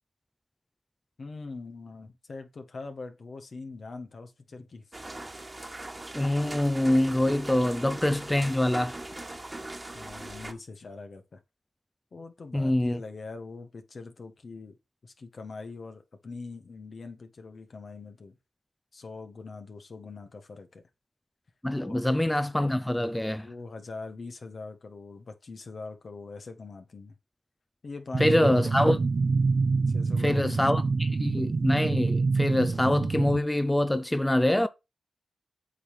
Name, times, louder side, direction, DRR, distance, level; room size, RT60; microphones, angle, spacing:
voice 1, 1.2-5.1 9.9-11.4 12.1-14.7 15.0-18.4 18.9-20.8 21.8-22.0 23.4-27.2 27.8-28.7 29.9-30.6 31.0-31.4, left 3 dB, 60° left, 1.4 m, -43 dB
sound 1, 4.9-10.5, right 2 dB, 30° right, 1.5 m, -40 dB
voice 2, 6.1-9.0 12.5-13.0 21.6-23.5 28.2-29.0 30.2-34.7, left 1 dB, 15° left, 0.6 m, -25 dB
sound 2, 28.1-33.4, right 4 dB, 60° right, 0.6 m, -26 dB
8.3 x 3.3 x 5.8 m
cardioid pair, 40°, 0 cm